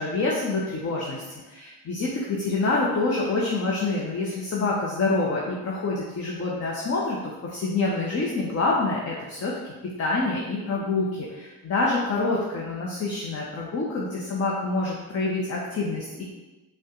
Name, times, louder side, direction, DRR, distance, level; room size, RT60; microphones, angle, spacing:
voice 1, 0.0-9.7 10.0-16.2, left 3 dB, 35° left, -4 dB, 0.9 m, -27 dB
5.1 x 2.4 x 3.8 m, 1.1 s
hypercardioid pair, 55°, 42 cm